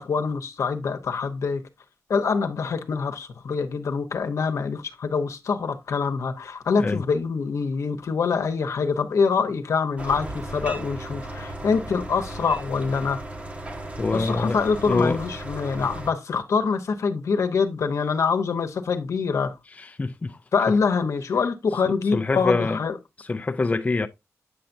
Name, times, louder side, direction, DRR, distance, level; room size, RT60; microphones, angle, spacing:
voice 1, 0.0-1.6 2.1-13.2 14.1-19.5 20.5-23.0, left 5 dB, 75° left, 0.9 m, -25 dB
sound 1, 10.0-16.1, right 1 dB, 25° right, 1.1 m, -36 dB
voice 2, 14.0-15.2 19.7-20.4 20.7-20.8 21.9-22.8 23.2-24.1, left 3 dB, 25° left, 0.4 m, -25 dB
8.5 x 5.7 x 2.6 m
wide cardioid pair, 90°, 5 cm